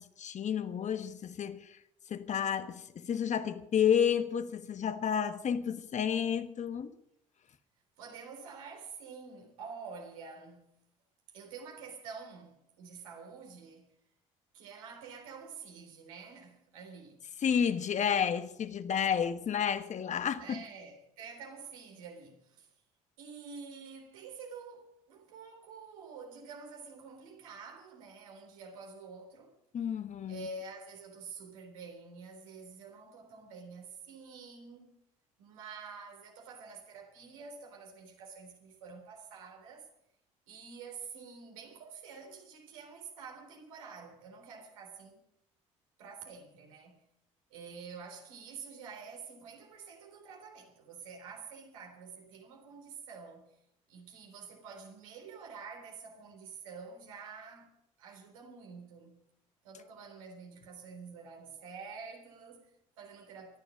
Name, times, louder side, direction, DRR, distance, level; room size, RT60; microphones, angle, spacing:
voice 1, 0.0-1.8 2.1-6.9 17.4-20.6 29.7-30.5, left 8 dB, 45° left, 1.3 m, -31 dB
voice 2, 8.0-10.8 11.3-14.0 14.5-17.2 20.4-22.7 23.2-29.5 30.3-34.9 35.4-39.9 40.5-45.2 46.0-47.0 47.5-53.6 53.9-59.2 59.6-63.6, right 5 dB, 80° right, 3.7 m, -48 dB
24.5 x 10.5 x 5.2 m
hypercardioid pair, 60°, 17 cm